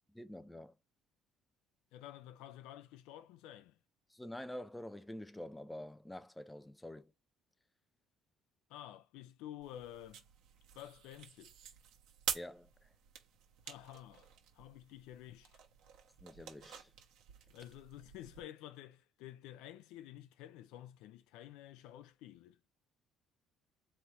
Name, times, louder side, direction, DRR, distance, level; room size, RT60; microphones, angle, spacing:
voice 1, 0.1-0.7 4.1-7.1 12.3-12.9 16.2-16.9, left 1 dB, 5° left, 0.3 m, -47 dB
voice 2, 1.9-3.8 8.7-10.2 10.7-11.5 13.7-15.5 17.5-22.6, left 12 dB, 90° left, 0.7 m, -51 dB
sound 1, 9.6-18.4, right 9 dB, 70° right, 1.1 m, -48 dB
4.4 x 3.1 x 3.2 m
cardioid pair, 175°, 0 cm